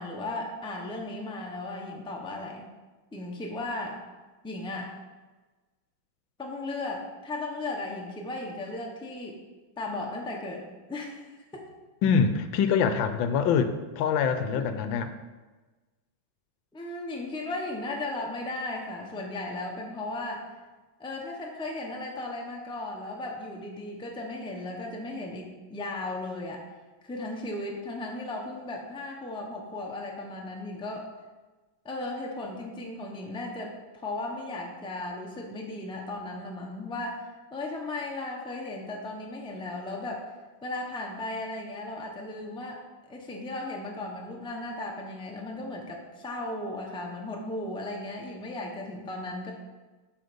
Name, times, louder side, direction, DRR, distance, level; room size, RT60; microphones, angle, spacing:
voice 1, 0.0-2.7 3.1-4.0 4.4-4.9 6.4-9.4 9.8-11.6 14.6-14.7 16.7-20.5 21.0-26.6 27.0-31.1 31.8-40.3 40.6-42.8 43.1-49.5, left 2 dB, 5° left, 0 dB, 0.7 m, -36 dB
voice 2, 12.0-15.1, left 6 dB, 80° left, 10 dB, 1.4 m, -25 dB
7.8 x 6.6 x 5.2 m, 1.2 s
omnidirectional pair, 2.1 m